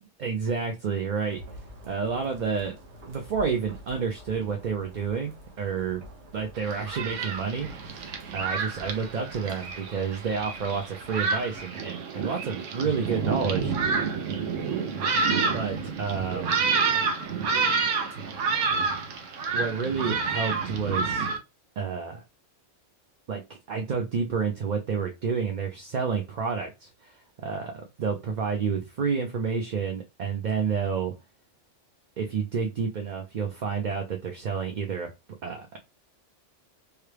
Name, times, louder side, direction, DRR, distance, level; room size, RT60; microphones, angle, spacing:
voice 1, 0.2-1.4 1.8-2.7 3.1-6.0 6.3-8.1 8.3-13.7 15.5-16.6 19.5-21.3 21.8-22.2 23.3-23.4 23.7-31.1 32.2-35.1 35.4-35.8, right 6 dB, 50° right, 0.6 m, -30 dB
sound 1, 1.3-11.6, equal, 65° right, 1.3 m, -48 dB
Thunderstorm, 6.6-21.4, right 4 dB, 85° right, 1.1 m, -29 dB
4.8 x 2.2 x 3.3 m
omnidirectional pair, 1.3 m